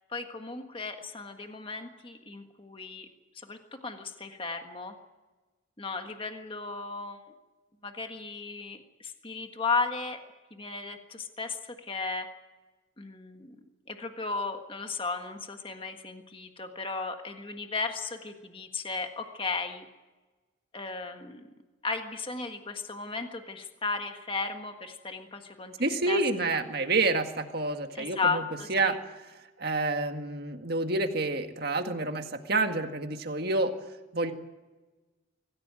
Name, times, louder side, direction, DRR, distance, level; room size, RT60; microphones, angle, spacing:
voice 1, 0.1-3.1 3.3-4.9 5.8-7.2 7.8-10.2 10.5-12.3 13.0-13.5 13.9-19.9 20.7-21.4 21.8-25.7 26.1-26.2 26.5-26.6 27.9-29.0, left 4 dB, 25° left, 5 dB, 1.6 m, -35 dB
voice 2, 25.8-28.4 28.7-29.0 29.6-33.7 34.1-34.3, right 3 dB, 50° right, 6 dB, 1.9 m, -28 dB
24.5 x 15.5 x 9.0 m, 1.2 s
head